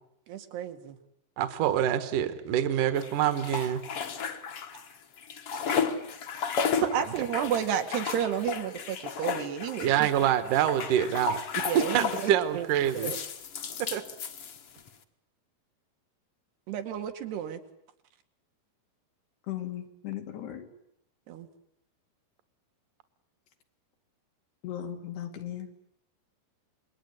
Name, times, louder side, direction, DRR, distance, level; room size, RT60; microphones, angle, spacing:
voice 1, 0.3-1.0 6.8-10.1 11.7-12.7 12.9-13.2 16.7-17.6 21.3-21.5, right 9 dB, 90° right, 6 dB, 4.2 m, -31 dB
voice 2, 1.4-3.8 9.8-11.4 11.7-13.1 13.8-14.0, right 10 dB, 60° right, 11 dB, 2.7 m, -26 dB
sound 1, 3.0-4.9 5.2-12.4 12.9-14.9, left 6 dB, 50° left, 1.9 m, -33 dB
voice 3, 19.5-20.7 24.6-25.7, left 11 dB, 85° left, 4 dB, 4.5 m, -37 dB
27.5 x 21.5 x 9.6 m, 0.78 s
omnidirectional pair, 4.6 m